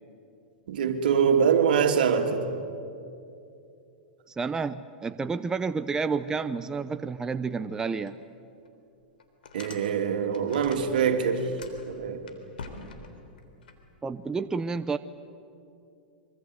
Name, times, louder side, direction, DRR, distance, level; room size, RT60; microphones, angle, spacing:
voice 1, 0.7-2.4 9.5-11.5 11.9-12.2, right 7 dB, 75° right, 2.7 m, -24 dB
voice 2, 4.3-8.1 14.0-15.0, right 4 dB, 15° right, 0.7 m, -30 dB
sound 1, 8.1-8.2 8.6-8.7 9.2-11.0 11.3-13.7, left 4 dB, 85° left, 3.6 m, -45 dB
25.5 x 24.5 x 8.0 m
hypercardioid pair, 120°, 5 cm